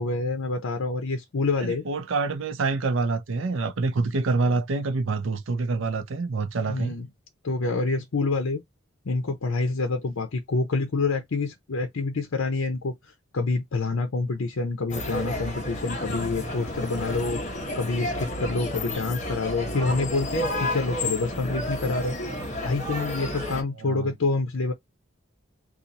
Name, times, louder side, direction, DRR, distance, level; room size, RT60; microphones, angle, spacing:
voice 1, 0.0-1.8 6.7-7.1 7.4-8.6 9.1-22.1 22.6-24.7, left 3 dB, 80° left, 0.6 m, -27 dB
voice 2, 1.6-7.0 23.8-24.1, right 3 dB, 70° right, 0.5 m, -26 dB
sound 1, 14.9-23.6, left 1 dB, 35° left, 0.9 m, -31 dB
2.8 x 2.4 x 3.9 m
head